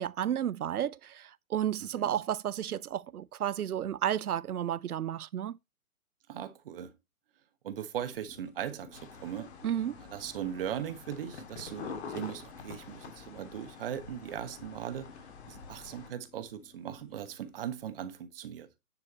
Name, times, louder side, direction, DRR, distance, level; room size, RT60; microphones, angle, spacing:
voice 1, 0.0-5.6 9.6-10.0, right 10 dB, 90° right, 0.5 m, -32 dB
voice 2, 1.8-2.2 6.3-6.9 7.6-9.5 10.0-18.7, right 9 dB, 40° right, 1.2 m, -39 dB
sound 1, 8.0-18.1, left 6 dB, 85° left, 1.7 m, -56 dB
sound 2, 8.9-16.1, left 5 dB, 50° left, 2.3 m, -47 dB
9.9 x 4.9 x 4.2 m
figure-of-eight pair, 140°, 43 cm